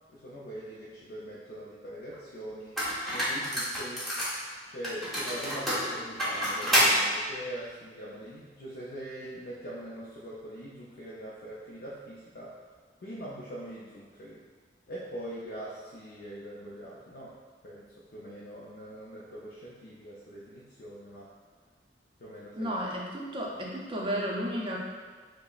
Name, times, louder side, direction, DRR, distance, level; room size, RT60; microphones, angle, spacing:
voice 1, 0.1-2.8 3.1-4.1 4.7-12.6 13.0-14.4 14.9-17.4 17.6-21.3 22.2-22.7, right 1 dB, 55° left, -7 dB, 0.5 m, -42 dB
sound 1, 2.1-2.2 2.8-4.4 4.8-6.9, equal, ahead, 0.9 m, -27 dB
voice 2, 22.5-24.8, equal, 30° right, -2 dB, 0.5 m, -33 dB
5.2 x 2.0 x 2.4 m, 1.5 s
head